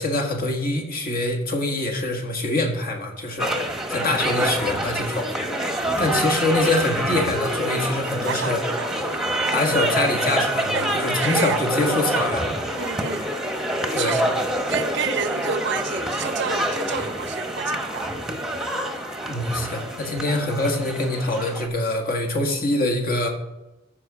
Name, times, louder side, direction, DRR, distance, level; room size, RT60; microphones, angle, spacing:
voice 1, 0.0-3.6 3.9-5.3 6.0-8.6 9.5-12.5 13.9-14.2 19.3-23.3, left 2 dB, 50° left, 1.7 m, -24 dB
sound 1, 3.4-21.7, right 1 dB, ahead, 1.0 m, -26 dB
voice 2, 8.2-9.3 10.7-11.6 12.7-13.3 14.0-14.4 14.7-18.1 20.2-20.4, right 6 dB, 65° right, 0.5 m, -30 dB
14.0 x 5.2 x 4.9 m
head